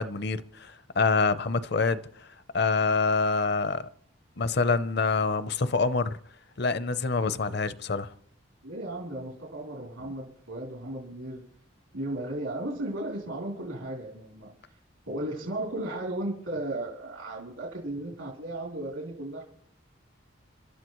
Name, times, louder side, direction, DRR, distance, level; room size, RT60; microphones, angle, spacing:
voice 1, 0.0-2.0 2.5-3.9 4.4-6.2 6.6-8.1, left 4 dB, 55° left, 0.6 m, -26 dB
voice 2, 8.6-11.4 11.9-14.5 15.1-19.4, right 1 dB, 85° right, 3.4 m, -35 dB
30.0 x 12.5 x 3.1 m
head